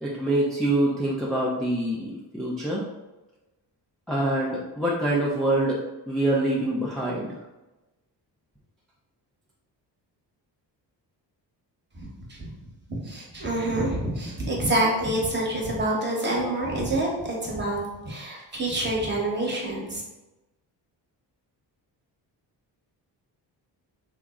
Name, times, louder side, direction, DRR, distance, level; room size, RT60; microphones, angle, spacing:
voice 1, 0.0-2.8 4.1-5.8 6.1-7.3, right 1 dB, ahead, -6 dB, 0.4 m, -25 dB
voice 2, 11.9-12.5 12.9-20.0, right 1 dB, 25° right, -3 dB, 1.0 m, -27 dB
3.5 x 2.0 x 3.6 m, 1.0 s
cardioid pair, 120°, 42 cm